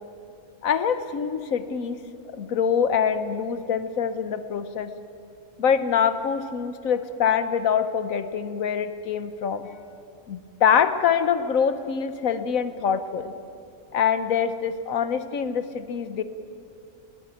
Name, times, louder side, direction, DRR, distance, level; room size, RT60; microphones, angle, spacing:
voice 1, 0.6-2.0 2.4-4.9 5.6-9.7 10.3-13.3 13.9-16.2, left 7 dB, 85° left, 11 dB, 1.3 m, -24 dB
21.0 x 17.5 x 9.1 m, 2.8 s
omnidirectional pair, 1.4 m